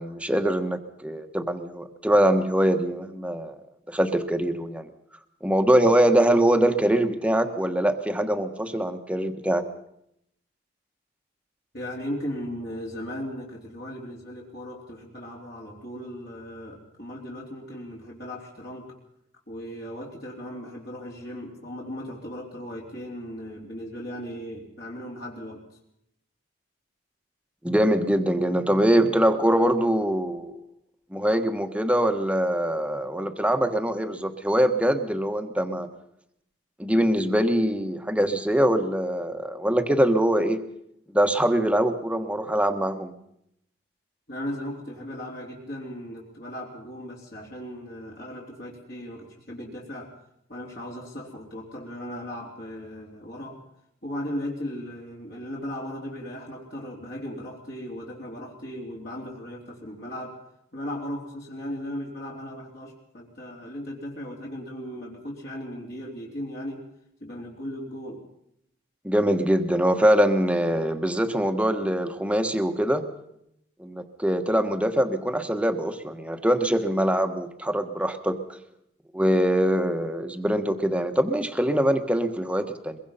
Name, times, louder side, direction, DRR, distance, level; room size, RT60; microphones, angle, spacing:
voice 1, 0.0-3.6 3.9-4.9 5.4-9.6 27.6-30.6 31.1-35.9 36.8-40.6 41.1-43.1 69.0-73.1 73.8-78.4 79.1-83.0, right 1 dB, 5° right, 7 dB, 1.3 m, -23 dB
voice 2, 11.7-19.0 19.5-25.6 44.3-50.1 50.5-53.6 54.0-60.4 60.7-66.8 67.2-68.2, equal, 55° left, -3 dB, 3.6 m, -37 dB
23.0 x 22.5 x 5.7 m, 0.76 s
head